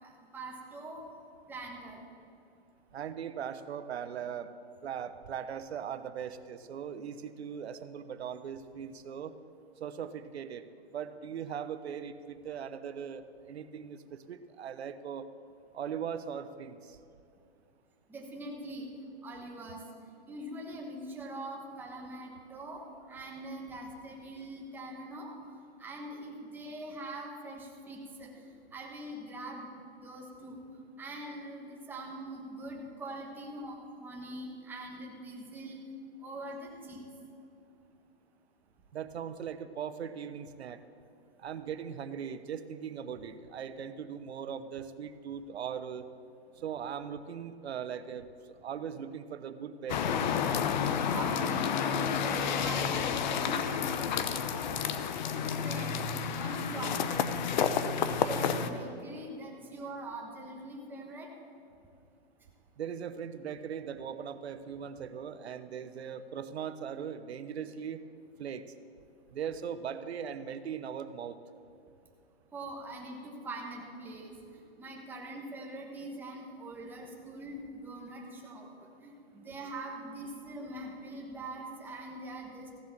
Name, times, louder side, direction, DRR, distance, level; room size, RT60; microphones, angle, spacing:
voice 1, 0.0-1.1 1.5-2.0 18.1-18.9 19.2-19.8 20.3-25.3 25.8-28.4 28.7-29.7 30.0-30.6 31.0-35.8 36.2-37.0 51.1-54.8 55.3-57.3 57.7-61.3 72.5-78.7 79.0-82.7, right 1 dB, 5° right, -1 dB, 1.2 m, -43 dB
voice 2, 2.9-4.5 4.8-9.3 9.8-15.3 15.7-17.0 38.9-40.8 41.4-46.1 46.6-48.3 48.6-50.3 62.8-68.0 68.4-68.7 69.3-71.4, right 8 dB, 85° right, 12 dB, 0.9 m, -39 dB
sound 1, 49.9-58.7, left 7 dB, 45° left, 0.8 m, -30 dB
15.0 x 7.6 x 7.3 m, 2.5 s
hypercardioid pair, 160°, 31 cm